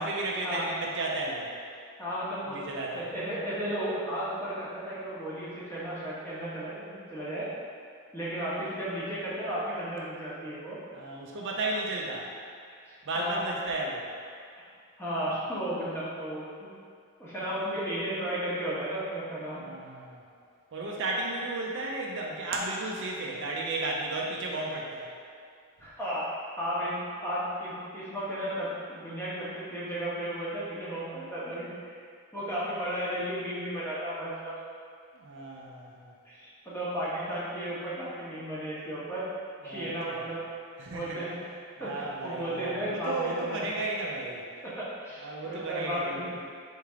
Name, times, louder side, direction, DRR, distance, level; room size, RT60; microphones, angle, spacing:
voice 1, 0.0-1.5 2.5-3.0 10.9-12.3 13.1-14.1 19.6-20.2 20.7-25.1 35.1-36.1 39.6-40.3 40.8-41.2 41.8-44.4 45.2-46.4, right 2 dB, 55° right, -2 dB, 0.5 m, -34 dB
voice 2, 2.0-2.6 2.9-7.5 8.1-10.8 12.8-13.4 15.0-16.7 17.2-19.6 25.8-26.2 26.6-32.0 32.3-34.5 36.2-39.3 39.6-40.4 40.9-41.4 41.8-43.7 44.6-46.2, right 1 dB, 10° left, -10 dB, 1.1 m, -34 dB
4.3 x 3.3 x 3.6 m, 2.2 s
head